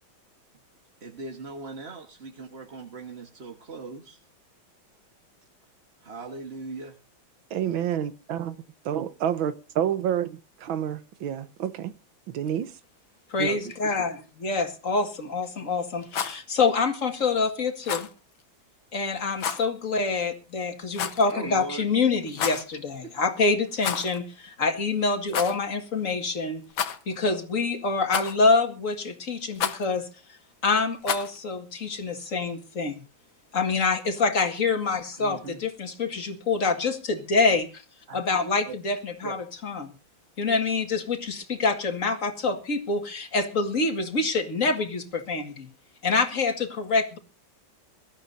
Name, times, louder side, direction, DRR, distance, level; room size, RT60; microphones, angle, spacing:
voice 1, 1.0-4.2 6.0-6.9 13.5-13.9 21.3-21.8 35.2-35.6 38.1-38.2 38.6-38.8 39.2-39.3, right 3 dB, 35° right, 1.5 m, -39 dB
voice 2, 7.5-8.5 8.9-11.9 12.3-12.7 13.4-13.5, right 9 dB, 80° right, 1.8 m, -28 dB
voice 3, 13.3-18.1 18.9-26.6 27.1-30.1 30.6-33.0 33.5-37.7 38.1-39.4 39.6-39.9 40.4-45.7 46.0-47.2, left 4 dB, 40° left, 2.2 m, -26 dB
Rattle, 16.0-16.4 17.8-18.1 19.4-19.7 20.9-21.3 22.3-22.7 23.8-24.2 24.5-24.6 25.3-25.6 26.7-27.2 28.1-28.5 29.6-29.9 31.0-31.4, left 8 dB, 75° left, 1.9 m, -30 dB
23.5 x 12.5 x 2.7 m
omnidirectional pair, 2.1 m